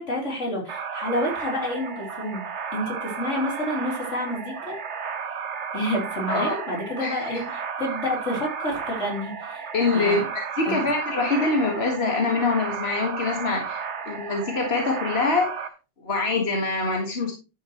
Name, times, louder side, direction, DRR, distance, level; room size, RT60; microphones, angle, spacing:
voice 1, 0.0-2.4 2.7-4.8 5.7-10.3 10.7-10.9, left 1 dB, 85° left, -1 dB, 4.1 m, -29 dB
sound 1, 0.7-15.7, right 6 dB, 70° right, 1.3 m, -33 dB
voice 2, 7.0-7.4 9.7-13.8 14.1-15.5 16.0-17.3, left 3 dB, 55° left, 1 dB, 2.1 m, -24 dB
11.0 x 9.3 x 3.1 m, 0.30 s
omnidirectional pair, 1.2 m